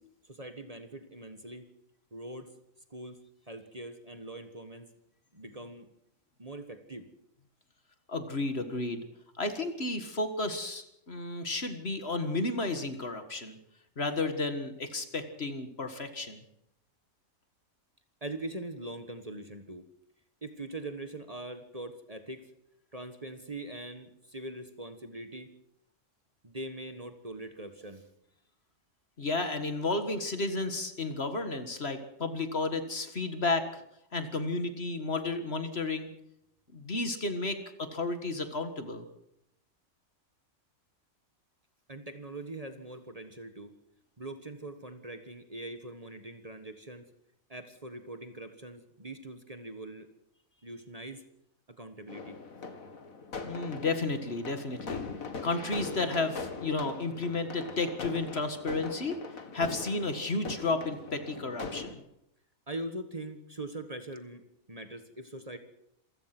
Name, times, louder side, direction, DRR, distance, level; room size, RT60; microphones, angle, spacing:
voice 1, 0.2-1.6 2.1-2.5 2.9-3.2 3.5-4.9 5.3-5.9 6.4-7.1 18.2-19.9 20.4-22.5 22.9-25.5 26.4-28.0 41.9-43.7 44.2-47.1 47.5-50.1 50.6-51.2 51.7-52.4 62.7-65.6, right 2 dB, 25° right, 8 dB, 1.5 m, -42 dB
voice 2, 8.1-9.0 9.4-13.6 14.0-16.4 29.2-33.8 34.1-36.1 36.7-39.1 53.4-55.0 55.4-59.2 59.5-62.0, left 3 dB, 50° left, 8 dB, 2.0 m, -32 dB
sound 1, 52.1-61.9, left 4 dB, 80° left, 2.4 m, -41 dB
27.0 x 16.0 x 6.1 m, 0.80 s
omnidirectional pair, 1.4 m